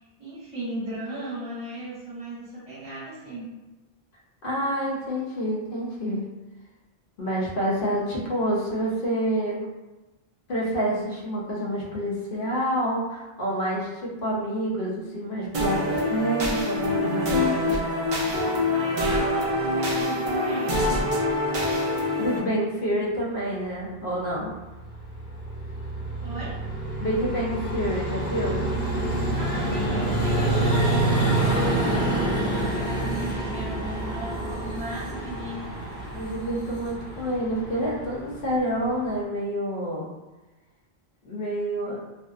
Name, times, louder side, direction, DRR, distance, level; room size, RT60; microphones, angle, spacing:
voice 1, 0.0-3.5 18.7-21.0 26.2-26.5 29.1-35.6, right 2 dB, 40° right, -11 dB, 0.8 m, -37 dB
voice 2, 4.4-6.2 7.2-9.6 10.5-17.5 22.2-24.5 27.0-28.6 34.9-35.0 36.1-40.1 41.2-42.0, equal, 60° left, -4 dB, 0.8 m, -28 dB
sound 1, 15.5-22.4, left 1 dB, 55° right, 0.4 m, -25 dB
Vehicle, 24.5-39.2, right 1 dB, 85° left, 1.2 m, -27 dB
sound 2, 30.7-36.9, right 1 dB, 10° left, 0.9 m, -40 dB
2.5 x 2.1 x 2.3 m, 1.1 s
omnidirectional pair, 1.0 m